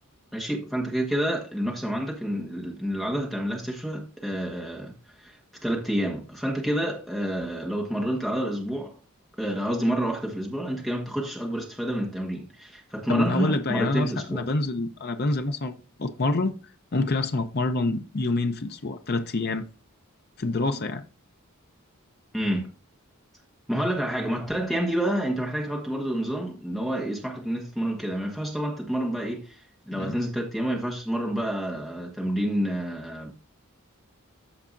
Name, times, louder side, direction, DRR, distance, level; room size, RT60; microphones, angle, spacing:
voice 1, 0.3-4.9 5.2-5.4 5.6-8.9 9.4-14.4 22.3-22.7 23.7-29.6 29.9-33.3, right 1 dB, ahead, 1.3 m, -28 dB
voice 2, 13.1-16.5 16.9-19.7 20.4-21.0 29.9-30.2, left 2 dB, 50° left, 0.6 m, -27 dB
14.0 x 4.8 x 2.6 m
head